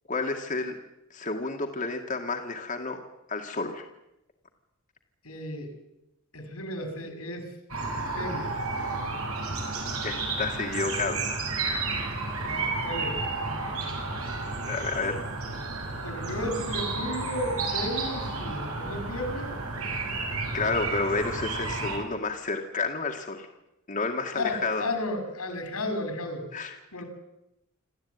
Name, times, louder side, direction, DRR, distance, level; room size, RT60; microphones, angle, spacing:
voice 1, 0.1-0.8 1.1-3.0 3.3-3.8 10.0-11.5 11.8-12.1 14.7-15.2 20.5-23.5 23.9-24.9 26.5-26.8, left 3 dB, 40° left, 2 dB, 2.0 m, -30 dB
voice 2, 5.2-5.7 6.3-7.5 7.9-8.6 12.5-13.2 16.0-19.6 24.3-26.4 26.9-27.0, left 1 dB, 90° left, 6 dB, 5.8 m, -33 dB
sound 1, 7.7-22.0, right 3 dB, 90° right, 6.3 m, -32 dB
26.5 x 14.5 x 9.6 m, 0.90 s
head